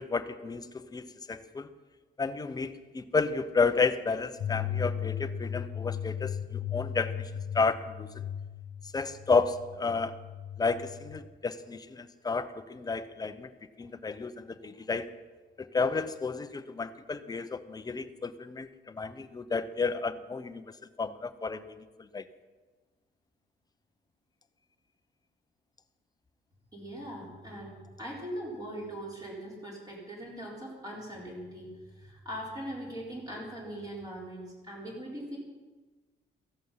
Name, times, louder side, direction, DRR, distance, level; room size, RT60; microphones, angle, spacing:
voice 1, 0.0-1.7 2.2-7.3 7.5-8.2 8.9-10.2 10.6-13.5 13.8-15.1 15.6-20.7 21.0-22.2, left 4 dB, 20° left, 11 dB, 0.7 m, -31 dB
sound 1, 4.4-11.2, left 8 dB, 65° left, 0.9 m, -36 dB
voice 2, 26.7-35.4, equal, 20° right, -4 dB, 4.2 m, -41 dB
16.5 x 15.0 x 5.7 m, 1.3 s
wide cardioid pair, 170°, 19 cm